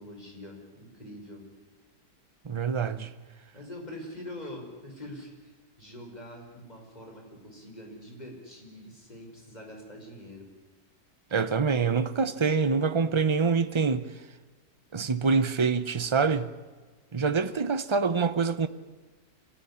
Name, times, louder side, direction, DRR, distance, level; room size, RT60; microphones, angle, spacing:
voice 1, 0.0-1.4 3.5-10.5, left 1 dB, 25° left, 5.4 m, -44 dB
voice 2, 2.4-3.1 11.3-14.1 14.9-16.5 17.1-18.7, right 5 dB, 35° right, 0.5 m, -25 dB
25.5 x 17.0 x 9.9 m
omnidirectional pair, 1.8 m